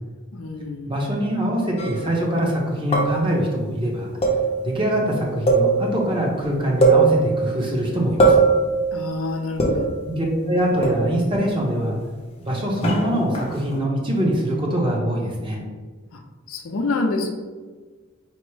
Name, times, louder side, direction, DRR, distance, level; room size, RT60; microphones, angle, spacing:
voice 1, 0.3-0.9 8.9-9.9 16.5-17.3, left 3 dB, 70° left, 3 dB, 0.5 m, -27 dB
voice 2, 0.9-4.1 4.6-8.4 10.1-12.0 12.4-15.6, right 1 dB, 20° right, -2 dB, 0.7 m, -23 dB
sound 1, 1.8-2.1 2.9-3.4 4.2-4.8 5.5-6.1 6.4-6.5 6.8-7.6 8.2-8.8 9.6-10.1 10.8-11.3 12.8-13.8, right 3 dB, 30° left, 0.6 m, -20 dB
4.3 x 2.0 x 4.6 m, 1.4 s
head